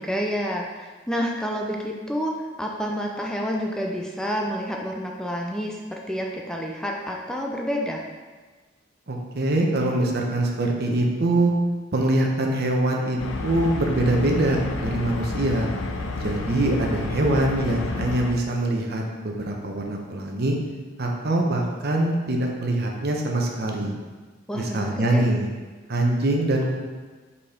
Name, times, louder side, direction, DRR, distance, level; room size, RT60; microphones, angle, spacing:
voice 1, 0.0-8.0 24.5-25.3, equal, 5° left, -1 dB, 0.4 m, -29 dB
voice 2, 9.1-11.5 11.9-15.7 16.1-20.6 21.0-23.9 24.5-25.5 25.9-26.8, right 1 dB, 55° right, 1 dB, 0.9 m, -23 dB
sound 1, 13.2-18.3, left 2 dB, 85° left, 0.6 m, -30 dB
5.2 x 4.2 x 4.3 m, 1.4 s
head